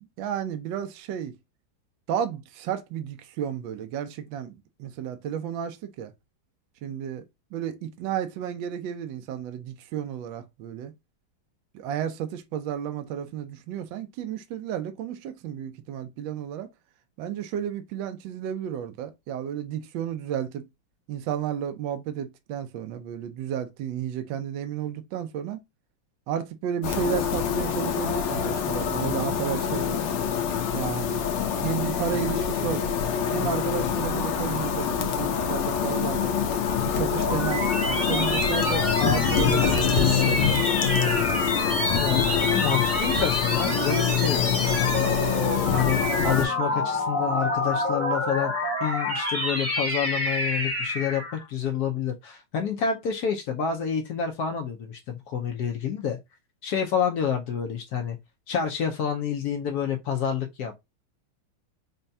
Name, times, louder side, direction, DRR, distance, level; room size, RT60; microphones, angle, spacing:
voice 1, 0.2-1.3 2.1-6.1 6.8-7.3 7.5-10.9 11.7-16.7 17.2-20.6 21.1-25.6 26.3-30.0 30.7-31.2 31.6-33.0 33.3-36.3 36.8-40.5, right 9 dB, 75° right, 1.3 m, -32 dB
sound 1, 26.8-46.5, left 7 dB, 90° left, 1.6 m, -25 dB
sound 2, 36.8-51.4, left 1 dB, 15° left, 0.6 m, -28 dB
voice 2, 42.0-45.4 45.7-48.5 48.8-56.2 56.6-58.2 58.5-60.8, left 8 dB, 70° left, 0.9 m, -28 dB
5.4 x 2.3 x 2.6 m
omnidirectional pair, 2.3 m